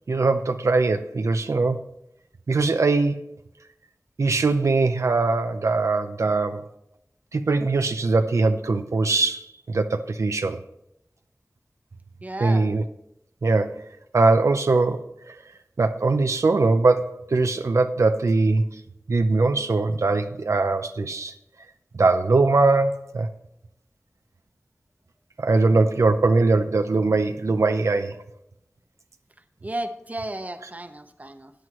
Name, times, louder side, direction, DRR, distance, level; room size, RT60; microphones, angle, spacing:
voice 1, 0.1-1.8 2.5-3.3 4.2-6.6 7.3-10.6 12.4-12.8 13.4-13.8 14.1-15.1 15.8-18.7 19.1-21.3 21.9-23.3 25.4-28.1, right 3 dB, 90° right, 7 dB, 0.6 m, -21 dB
voice 2, 12.2-12.7 29.6-31.5, right 1 dB, 30° right, 8 dB, 0.9 m, -33 dB
14.0 x 9.2 x 3.0 m, 0.82 s
wide cardioid pair, 60°, 5 cm